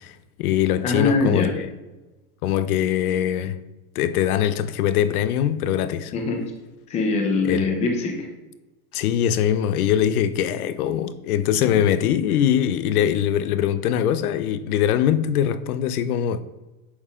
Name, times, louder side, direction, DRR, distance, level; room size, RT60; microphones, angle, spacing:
voice 1, 0.0-1.7 2.4-3.6 3.9-6.1 7.4-7.7 8.9-16.4, left 10 dB, 90° left, 0.6 m, -22 dB
voice 2, 0.8-1.5 6.1-6.4 6.9-8.3, left 3 dB, 15° left, 0.5 m, -23 dB
8.0 x 5.5 x 2.4 m
supercardioid pair, 165°, 43 cm